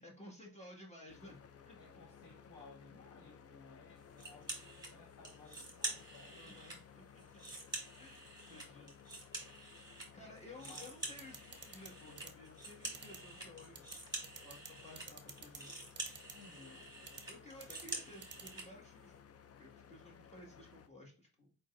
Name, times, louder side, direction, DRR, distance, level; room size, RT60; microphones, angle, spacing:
voice 1, 0.0-1.4 1.7-1.8 6.3-7.2 8.0-8.9 10.1-14.0 14.4-15.7 17.3-19.2 19.6-21.6, left 1 dB, 20° left, 1.7 m, -55 dB
sound 1, 1.1-20.9, left 7 dB, 45° left, 0.5 m, -59 dB
voice 2, 1.8-6.6 10.6-11.0 16.3-16.9, left 3 dB, 65° left, 1.6 m, -59 dB
sound 2, 4.2-4.9 5.2-6.8 7.2-10.1 10.4-18.7, right 2 dB, 10° right, 1.7 m, -47 dB
sound 3, 11.2-11.9 12.2-12.3 12.9-13.2 13.8-14.0 14.2-14.7 15.0-15.6 16.0-16.3 17.1-17.2 17.6-17.9 18.2-18.5, right 6 dB, 30° right, 0.8 m, -49 dB
4.6 x 3.9 x 2.5 m
cardioid pair, 105°, 35 cm